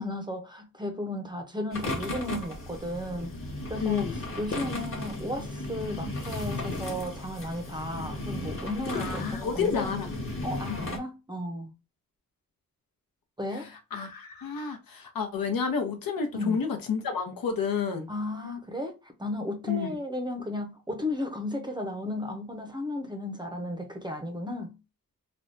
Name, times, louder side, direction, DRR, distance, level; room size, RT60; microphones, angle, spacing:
voice 1, 0.0-3.3 3.7-10.0 10.4-11.7 13.4-13.7 16.3-16.6 18.1-24.8, left 1 dB, 15° right, 0.5 m, -34 dB
sound 1, 1.7-11.0, left 2 dB, 40° left, 1.0 m, -35 dB
voice 2, 3.8-4.2 8.9-10.1 10.8-10.9 13.5-13.6 13.9-18.1 19.7-20.0, left 6 dB, 85° left, 0.8 m, -30 dB
3.4 x 2.2 x 2.6 m
wide cardioid pair, 130°, 34 cm